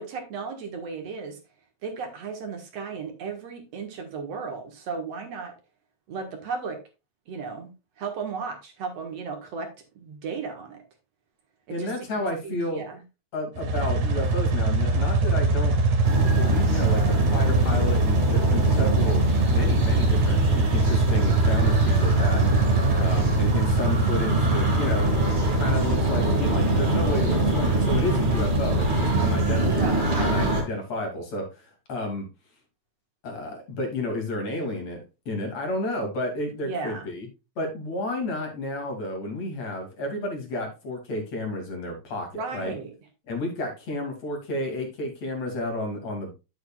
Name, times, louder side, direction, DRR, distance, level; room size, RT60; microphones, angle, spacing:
voice 1, 0.0-1.4 1.8-5.5 6.1-6.8 7.3-9.7 10.0-10.8 11.7-11.9 12.4-13.0 29.8-30.1 36.6-37.1 42.3-42.9, right 5 dB, 65° right, 4 dB, 2.5 m, -35 dB
voice 2, 11.7-12.8 13.3-15.8 16.3-22.5 23.0-25.1 25.5-29.8 30.2-32.3 33.2-37.3 37.6-42.8 43.3-46.3, left 1 dB, 65° left, 2 dB, 3.6 m, -31 dB
sound 1, 13.6-30.2, right 3 dB, 85° right, 3.4 m, -23 dB
sound 2, 16.0-30.6, right 1 dB, 20° right, 2.2 m, -25 dB
9.7 x 7.9 x 2.4 m, 0.28 s
omnidirectional pair, 3.3 m